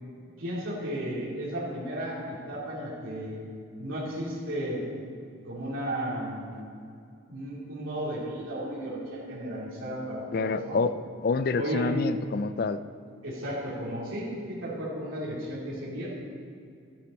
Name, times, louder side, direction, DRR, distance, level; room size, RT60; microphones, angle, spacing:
voice 1, 0.4-3.4 3.8-4.8 5.4-6.6 7.3-10.8 11.6-11.9 13.2-16.1, right 1 dB, 85° right, -7 dB, 2.5 m, -34 dB
voice 2, 10.3-12.8, left 4 dB, 45° left, 13 dB, 0.3 m, -28 dB
13.0 x 9.5 x 4.1 m, 2.4 s
head